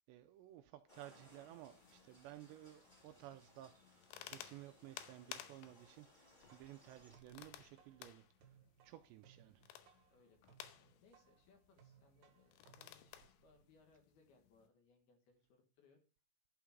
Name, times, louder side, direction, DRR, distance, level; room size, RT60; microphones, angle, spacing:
voice 1, 0.0-8.6 8.8-9.7, right 14 dB, 80° right, 2.6 m, -56 dB
sound 1, 0.9-7.2, left 1 dB, 15° left, 1.7 m, -67 dB
sound 2, 1.1-14.7, left 12 dB, 90° left, 3.1 m, -58 dB
sound 3, 6.4-13.9, right 8 dB, 65° right, 2.6 m, -69 dB
voice 2, 10.1-16.0, left 4 dB, 65° left, 3.0 m, -70 dB
11.5 x 5.0 x 5.9 m
omnidirectional pair, 5.4 m